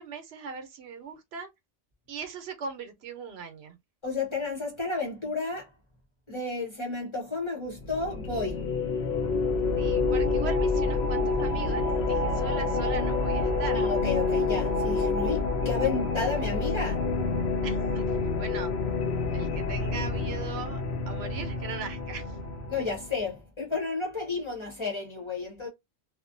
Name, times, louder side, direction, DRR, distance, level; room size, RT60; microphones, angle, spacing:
voice 1, 0.0-1.5 2.1-3.8 9.8-13.8 17.6-18.8 19.3-22.4, right 5 dB, 75° right, 0.9 m, -39 dB
voice 2, 4.0-5.7 6.3-8.7 13.7-17.1 22.7-25.7, left 4 dB, 30° left, 0.8 m, -32 dB
sound 1, 7.8-23.2, left 3 dB, 75° left, 0.8 m, -28 dB
2.5 x 2.1 x 2.5 m
omnidirectional pair, 1.1 m